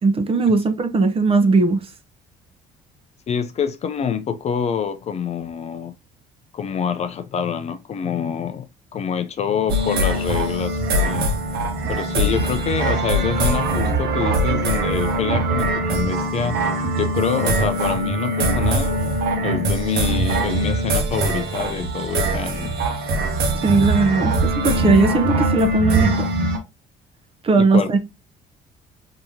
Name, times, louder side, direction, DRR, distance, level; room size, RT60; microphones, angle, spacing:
voice 1, 0.0-1.8 23.6-26.3 27.4-28.0, right 3 dB, 35° right, 0.7 m, -18 dB
voice 2, 3.3-5.9 6.5-10.8 11.0-11.3 11.9-16.6 17.0-19.0 19.4-22.8 27.6-27.9, left 7 dB, 40° left, 0.4 m, -26 dB
sound 1, 9.7-26.6, right 1 dB, 70° right, 1.0 m, -22 dB
3.6 x 2.8 x 2.7 m
cardioid pair, 110°, 17 cm